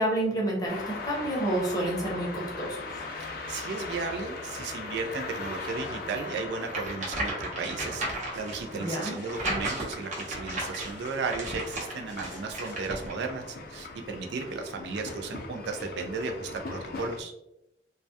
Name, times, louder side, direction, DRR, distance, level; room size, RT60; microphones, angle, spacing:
voice 1, 0.0-2.8 8.7-9.1, right 1 dB, 20° left, -2 dB, 0.7 m, -29 dB
sound 1, 0.7-17.2, left 3 dB, 55° left, 0.4 m, -40 dB
voice 2, 3.1-8.1 8.3-17.3, right 4 dB, 70° right, 4 dB, 0.3 m, -35 dB
sound 2, 6.7-13.1, right 1 dB, 40° right, 0.7 m, -35 dB
2.2 x 2.1 x 2.6 m, 0.86 s
head